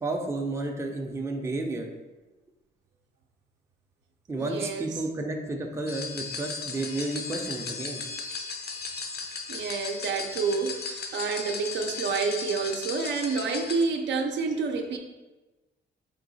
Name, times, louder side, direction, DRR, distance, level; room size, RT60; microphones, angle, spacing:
voice 1, 0.0-1.9 4.3-8.0, right 2 dB, 15° right, 2 dB, 0.5 m, -31 dB
voice 2, 4.4-4.9 9.5-15.0, right 4 dB, 65° right, 4 dB, 0.5 m, -29 dB
sound 1, 5.9-13.8, left 4 dB, 55° left, 0.6 m, -36 dB
3.9 x 2.7 x 3.9 m, 1.2 s
cardioid pair, 90°, 20 cm